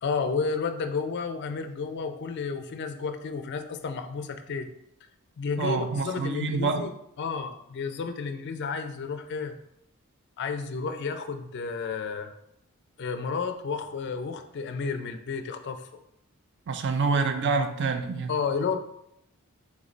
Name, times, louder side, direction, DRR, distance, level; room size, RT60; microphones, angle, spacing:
voice 1, 0.0-4.7 5.4-6.9 7.2-9.6 10.4-12.3 13.0-15.8 18.3-18.8, left 5 dB, 50° left, 7 dB, 0.4 m, -31 dB
voice 2, 5.6-6.9 16.7-18.3, right 4 dB, 50° right, 7 dB, 0.4 m, -27 dB
3.5 x 3.1 x 3.8 m, 0.79 s
head